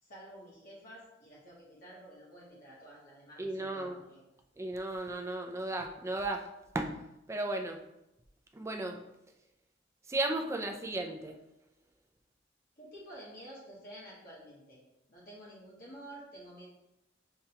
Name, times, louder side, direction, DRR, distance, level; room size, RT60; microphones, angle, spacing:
voice 1, 0.0-4.2 12.8-14.8 15.1-16.7, right 1 dB, 50° left, -5 dB, 1.1 m, -50 dB
voice 2, 3.4-4.0 4.6-6.5 6.7-6.9 7.3-7.8 8.5-9.0 10.1-11.4, right 2 dB, 15° right, 4 dB, 0.3 m, -35 dB
5.7 x 2.2 x 2.8 m, 0.88 s
head